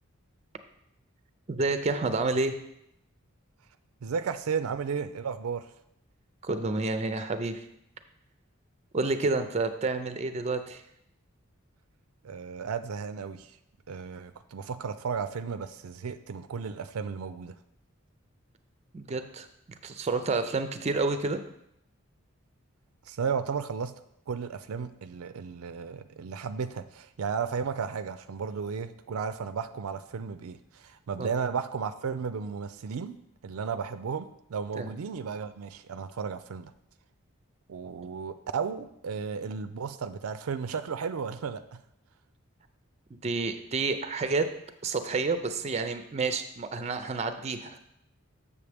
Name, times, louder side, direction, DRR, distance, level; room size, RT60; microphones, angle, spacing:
voice 1, 1.5-2.5 6.4-7.6 8.9-10.8 18.9-19.5 19.8-21.4 31.2-31.3 34.8-34.9 43.2-44.5 44.8-47.8, right 3 dB, 30° right, 9 dB, 0.4 m, -29 dB
voice 2, 4.0-5.6 12.2-13.5 13.9-17.5 23.1-23.9 24.3-33.2 33.4-36.7 37.7-41.6, right 6 dB, 90° right, 11 dB, 0.4 m, -34 dB
7.1 x 6.9 x 3.4 m, 0.78 s
head